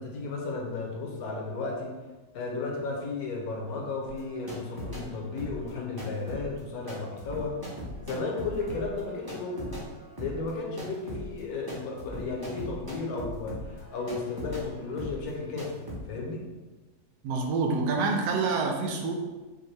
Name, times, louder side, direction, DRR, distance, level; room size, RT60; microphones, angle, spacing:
voice 1, 0.0-1.9 2.3-7.5 8.0-9.8 10.2-15.8 16.1-16.4, left 3 dB, 65° left, -1 dB, 1.2 m, -34 dB
sound 1, 4.1-5.1 5.4-14.7 15.0-15.3 15.6-16.0, equal, 25° right, 0.5 m, -40 dB
voice 2, 17.2-19.1, right 4 dB, 85° right, 2 dB, 1.2 m, -27 dB
5.2 x 2.2 x 3.2 m, 1.2 s
omnidirectional pair, 1.8 m